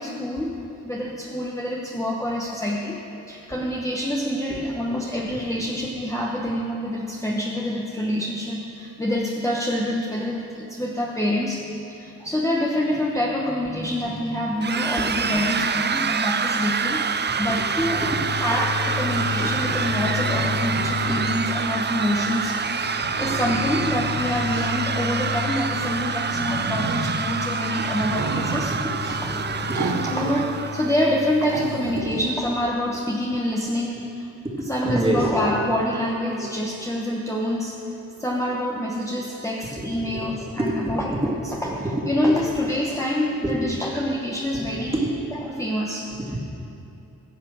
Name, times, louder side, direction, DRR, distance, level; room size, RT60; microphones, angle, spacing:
voice 1, 0.0-11.6 11.9-18.0 18.4-22.6 22.8-28.7 29.0-29.3 30.1-34.2 34.7-37.7 38.2-41.7 42.1-45.0 45.4-46.1, left 1 dB, 10° left, -3 dB, 1.0 m, -26 dB
sound 1, 14.6-30.9, right 5 dB, 30° right, 0.4 m, -26 dB
voice 2, 17.2-18.2 19.1-19.2 19.6-19.8 20.3-21.2 27.8-29.0 29.2-29.9 32.0-32.1 34.4-35.6 36.4-36.5 39.4-41.3 41.6-42.6 43.4-43.6 44.1-45.1 46.2-46.4, right 1 dB, 15° right, -3 dB, 2.0 m, -30 dB
sound 2, 17.8-32.0, left 5 dB, 45° left, 0.7 m, -33 dB
sound 3, 22.4-22.5 22.8-24.8 26.3-27.2 28.0-28.8 29.7-30.5 30.8-30.9 31.4-32.3, right 4 dB, 60° right, 0.9 m, -31 dB
15.0 x 7.6 x 6.2 m, 2.8 s
wide cardioid pair, 120°, 34 cm